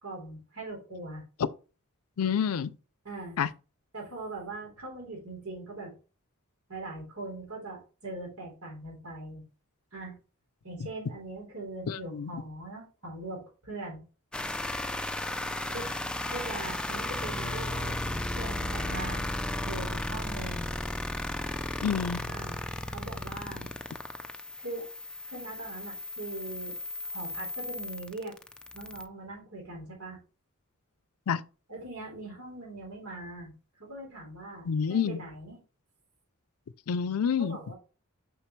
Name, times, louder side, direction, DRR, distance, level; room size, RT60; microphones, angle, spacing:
voice 1, 0.0-1.2 3.0-3.4 3.9-5.9 6.7-9.4 9.9-10.2 10.6-14.0 15.7-15.9 16.3-19.2 19.6-20.7 22.3-22.6 22.9-23.7 24.6-24.9 25.3-26.8 27.0-28.3 28.7-30.2 31.7-33.5 33.8-35.6 37.4-37.7, right 2 dB, 80° right, 3.6 m, -41 dB
voice 2, 2.2-2.7 3.4-3.5 11.9-12.3 21.8-22.3 31.3-31.4 34.7-35.2 36.9-37.6, left 7 dB, 90° left, 0.5 m, -28 dB
sound 1, 14.3-29.1, left 1 dB, 5° left, 0.5 m, -35 dB
6.6 x 5.7 x 3.1 m
head